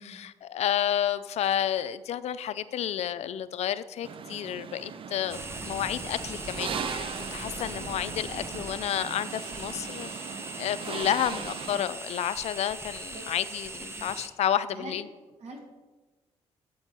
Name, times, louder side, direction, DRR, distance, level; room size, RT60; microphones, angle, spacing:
voice 1, 0.0-10.1 10.6-15.0, left 10 dB, 65° left, 14 dB, 0.4 m, -30 dB
sound 1, 4.0-11.8, right 6 dB, 50° right, 0.4 m, -39 dB
sound 2, 5.3-14.3, right 2 dB, 20° right, 0.8 m, -40 dB
voice 2, 11.1-11.5 13.1-13.3 13.8-14.1 14.7-15.0 15.4-15.7, right 2 dB, 65° right, 0 dB, 1.9 m, -45 dB
7.7 x 4.6 x 4.3 m, 1.2 s
cardioid pair, 70°, 12 cm